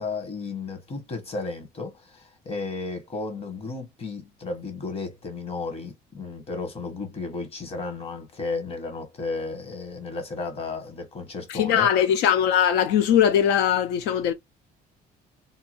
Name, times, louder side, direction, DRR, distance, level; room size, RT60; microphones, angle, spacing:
voice 1, 0.0-11.9, left 3 dB, 35° left, 1.1 m, -33 dB
voice 2, 11.5-14.3, left 9 dB, 85° left, 0.4 m, -20 dB
2.7 x 2.3 x 2.8 m
cardioid pair, 110°, 17 cm